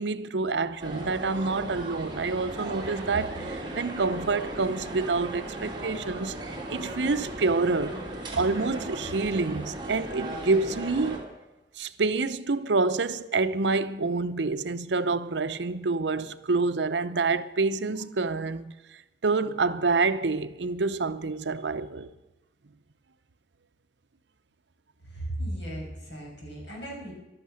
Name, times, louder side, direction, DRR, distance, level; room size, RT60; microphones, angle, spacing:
voice 1, 0.0-6.4 6.7-8.0 8.3-11.2 11.7-22.1, right 3 dB, 70° right, 0.7 m, -27 dB
sound 1, 0.8-11.2, right 1 dB, 25° right, 2.9 m, -37 dB
voice 2, 25.0-27.1, right 1 dB, 75° left, 6.8 m, -36 dB
14.0 x 12.0 x 6.4 m
head